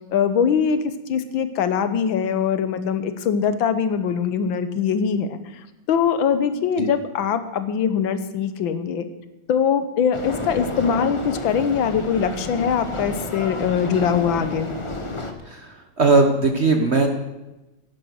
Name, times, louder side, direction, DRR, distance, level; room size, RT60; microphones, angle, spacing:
voice 1, 0.1-0.8 1.1-5.4 5.9-9.1 9.5-14.7, left 7 dB, 75° left, 11 dB, 1.7 m, -22 dB
sound 1, 10.1-15.3, left 2 dB, 25° left, 0.7 m, -31 dB
voice 2, 15.4-17.1, right 3 dB, 40° right, 5 dB, 1.1 m, -19 dB
11.0 x 10.0 x 6.3 m, 1.0 s
omnidirectional pair, 2.2 m